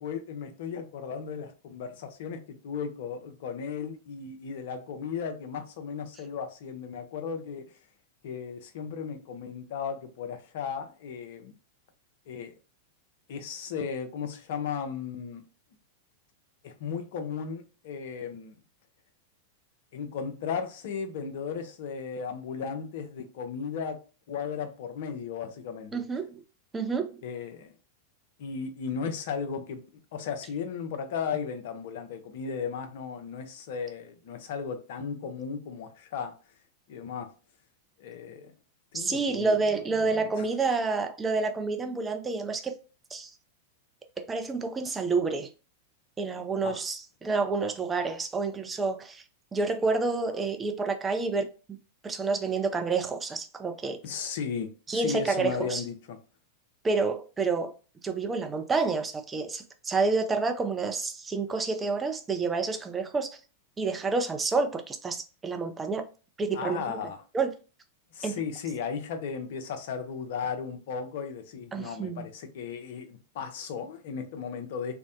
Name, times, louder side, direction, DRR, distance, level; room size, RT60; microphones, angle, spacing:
voice 1, 0.0-7.6 8.2-11.5 12.3-12.5 13.3-15.4 16.6-18.6 19.9-24.0 24.3-26.0 27.2-27.7 28.4-29.8 30.1-36.3 36.9-37.3 38.0-38.5 38.9-39.6 39.9-40.4 46.6-46.8 54.0-56.2 66.5-67.2 68.1-75.0, left 6 dB, 60° left, 0.5 m, -35 dB
voice 2, 25.9-26.4 26.7-27.1 38.9-42.8 43.1-43.3 44.2-45.5 46.2-49.2 49.5-51.8 52.0-54.0 54.9-55.8 56.8-57.7 58.0-63.3 63.8-66.0 66.4-67.0 67.3-67.5 68.2-68.3 71.7-72.3, right 4 dB, 15° right, 0.4 m, -29 dB
2.5 x 2.1 x 2.6 m
figure-of-eight pair, 95°, 0 cm